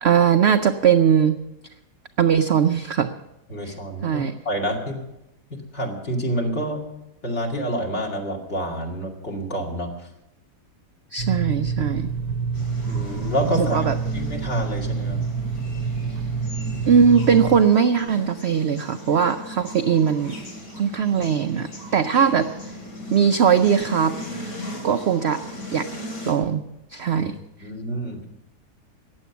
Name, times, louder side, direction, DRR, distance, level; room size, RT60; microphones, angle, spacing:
voice 1, 0.0-1.4 2.2-3.1 3.6-3.7 4.0-4.3 11.1-12.1 13.5-14.0 16.9-20.4 20.7-22.6 23.1-24.2 24.8-25.4 25.7-25.9 26.3-26.6 26.9-27.4, right 7 dB, 65° right, 8 dB, 0.7 m, -20 dB
voice 2, 3.5-5.0 5.5-6.8 7.2-9.9 12.9-13.8 14.1-15.2 27.2-27.3 27.6-28.2, right 1 dB, 45° left, 0 dB, 2.7 m, -28 dB
sound 1, 11.2-17.6, right 5 dB, 85° right, 1.4 m, -27 dB
sound 2, 12.5-26.3, left 1 dB, 85° left, 3.8 m, -37 dB
15.0 x 10.0 x 7.0 m, 0.90 s
omnidirectional pair, 1.7 m